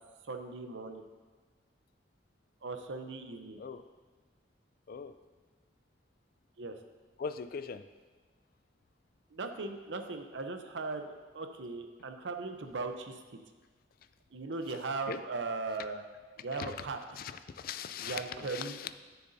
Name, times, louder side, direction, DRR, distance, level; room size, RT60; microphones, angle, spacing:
voice 1, 0.3-1.0 2.6-3.6 6.6-6.8 9.3-13.2 14.3-16.0 16.4-17.2 18.0-18.8, right 3 dB, 75° right, 6 dB, 0.7 m, -38 dB
voice 2, 7.2-7.8 15.1-15.2 16.5-16.9 17.2-19.0, left 6 dB, 50° left, 11 dB, 0.4 m, -40 dB
13.5 x 6.8 x 2.7 m, 1.4 s
head